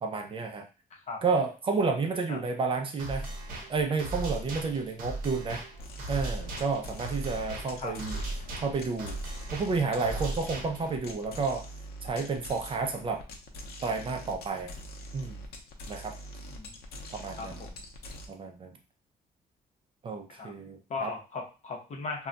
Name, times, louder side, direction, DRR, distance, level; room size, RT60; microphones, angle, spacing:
voice 1, 0.0-0.7 1.2-3.3 3.7-5.6 6.1-8.2 8.6-9.2 9.5-11.6 12.0-13.2 13.8-14.7 15.1-15.4 15.9-16.1 17.1-17.6 18.3-18.8 20.0-21.1, right 4 dB, 35° right, 4 dB, 0.4 m, -31 dB
sound 1, 3.0-11.0, right 2 dB, 65° right, 0.8 m, -38 dB
sound 2, 5.8-18.3, equal, 85° left, 0.6 m, -44 dB
voice 2, 17.4-17.8 20.3-20.5 20.9-22.3, left 4 dB, 50° left, 0 dB, 0.7 m, -37 dB
2.2 x 2.2 x 3.8 m, 0.33 s
cardioid pair, 165°, 16 cm